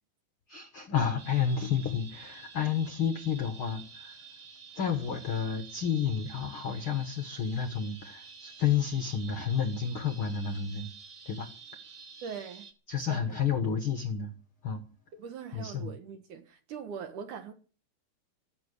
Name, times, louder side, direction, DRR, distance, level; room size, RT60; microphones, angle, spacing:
voice 1, 0.5-4.2 4.7-10.9 11.2-11.5 12.9-14.3 14.6-14.8 15.5-15.9, left 7 dB, 60° left, 1.4 m, -30 dB
sound 1, 1.2-12.7, right 5 dB, 80° right, 0.9 m, -50 dB
voice 2, 12.2-12.7 13.1-13.4 15.1-17.5, right 7 dB, 60° right, 2.6 m, -41 dB
16.5 x 7.9 x 9.8 m
omnidirectional pair, 4.6 m